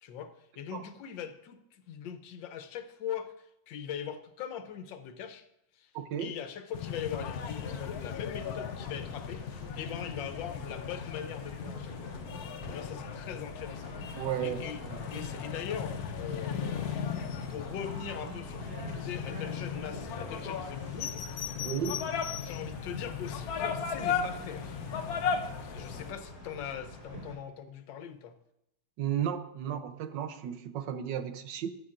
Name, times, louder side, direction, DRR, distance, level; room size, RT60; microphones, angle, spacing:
voice 1, 0.0-5.5 5.7-5.9 6.2-9.5 9.7-12.1 12.5-14.8 15.1-16.9 17.5-21.6 22.4-24.8 25.7-28.4, left 8 dB, 80° left, 9 dB, 1.5 m, -41 dB
voice 2, 5.9-6.3 14.2-15.1 21.6-22.1 29.0-31.7, right 9 dB, 75° right, 9 dB, 1.4 m, -34 dB
sound 1, 6.7-26.1, left 7 dB, 65° left, 1.1 m, -37 dB
sound 2, 7.7-27.3, equal, 30° right, 4.0 m, -47 dB
13.5 x 7.4 x 2.5 m, 0.83 s
omnidirectional pair, 2.0 m